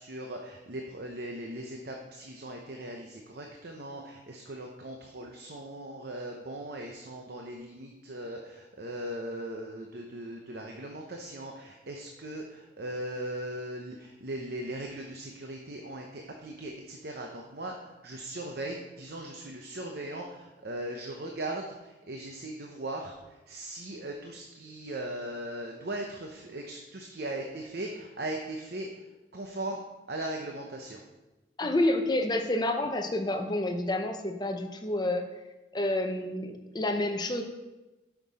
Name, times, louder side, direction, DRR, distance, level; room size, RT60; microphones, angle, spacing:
voice 1, 0.0-28.9 29.3-29.8 30.1-31.0, right 1 dB, 55° right, 1 dB, 0.7 m, -39 dB
voice 2, 31.6-35.2 35.7-37.4, left 1 dB, 20° left, 5 dB, 0.7 m, -29 dB
8.5 x 6.0 x 4.1 m, 1.1 s
head